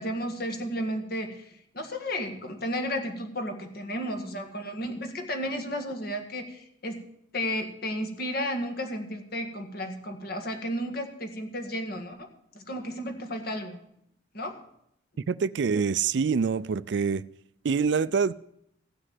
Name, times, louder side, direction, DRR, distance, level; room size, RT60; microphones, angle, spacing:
voice 1, 0.0-7.0 7.3-12.3 12.5-13.8 14.3-14.6, equal, 50° left, 1.8 m, -33 dB
voice 2, 15.3-17.2 17.6-18.3, right 5 dB, 65° right, 0.4 m, -25 dB
15.0 x 6.5 x 7.7 m
head